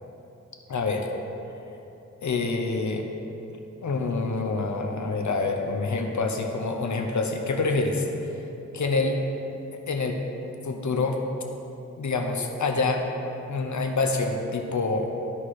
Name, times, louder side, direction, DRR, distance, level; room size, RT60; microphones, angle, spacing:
voice 1, 0.7-1.1 2.2-3.1 3.8-8.1 8.3-8.4 8.7-9.2 9.9-10.2 10.6-11.2 12.0-13.0 13.5-15.1, left 3 dB, 70° left, 3 dB, 0.9 m, -26 dB
12.5 x 4.8 x 4.3 m, 2.9 s
wide cardioid pair, 95°, 30 cm